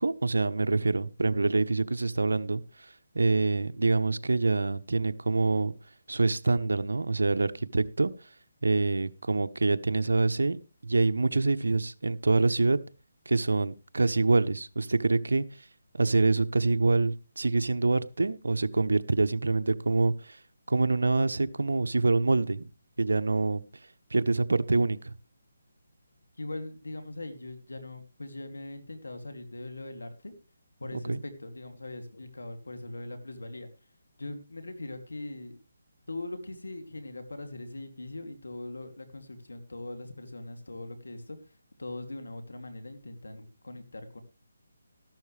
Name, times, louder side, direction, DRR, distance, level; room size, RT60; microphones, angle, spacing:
voice 1, 0.0-2.6 3.1-5.7 6.1-8.1 8.6-12.8 13.3-15.4 15.9-20.4 20.7-22.7 23.0-23.6 24.1-25.1 31.0-31.2, right 3 dB, 80° right, 11 dB, 0.9 m, -26 dB
voice 2, 26.4-30.3 30.8-33.7 34.2-35.6 36.1-41.4 41.8-44.2, left 2 dB, 85° left, 7 dB, 2.8 m, -41 dB
13.5 x 12.0 x 3.4 m, 0.32 s
figure-of-eight pair, 155°, 0 cm